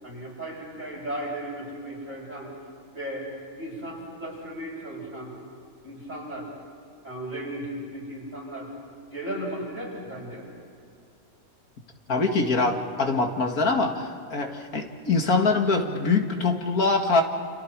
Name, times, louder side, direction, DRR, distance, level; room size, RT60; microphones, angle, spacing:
voice 1, 0.0-2.5 2.9-3.2 3.6-5.3 5.8-6.5 7.0-8.7 9.1-10.5, right 1 dB, 60° right, -5 dB, 8.5 m, -35 dB
voice 2, 12.1-17.2, left 3 dB, 75° left, 3 dB, 2.5 m, -24 dB
29.5 x 29.0 x 4.7 m, 2.4 s
omnidirectional pair, 1.6 m